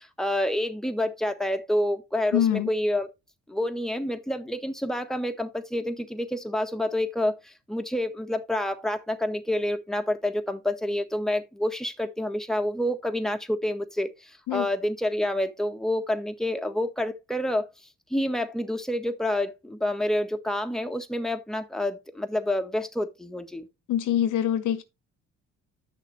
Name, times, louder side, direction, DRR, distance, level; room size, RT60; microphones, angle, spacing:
voice 1, 0.0-3.1 3.5-17.7 18.1-23.7, left 1 dB, ahead, 1.4 m, -28 dB
voice 2, 2.3-2.7 14.5-14.7 23.9-24.8, left 10 dB, 85° left, 1.5 m, -24 dB
10.0 x 6.6 x 3.2 m
cardioid pair, 90°, 30 cm